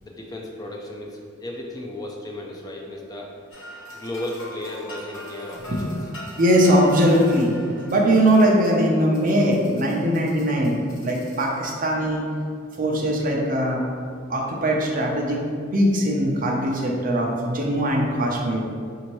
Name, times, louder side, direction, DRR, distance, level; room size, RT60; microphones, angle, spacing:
voice 1, 0.0-3.3 3.9-6.0, left 1 dB, 20° left, -1 dB, 0.4 m, -34 dB
sound 1, 3.5-11.9, equal, 80° left, 1.2 m, -41 dB
voice 2, 6.4-7.5 7.9-10.7 11.0-12.2 12.8-13.8 14.3-15.4 15.7-18.7, equal, 45° right, -1 dB, 0.6 m, -20 dB
5.2 x 2.8 x 3.0 m, 2.2 s
head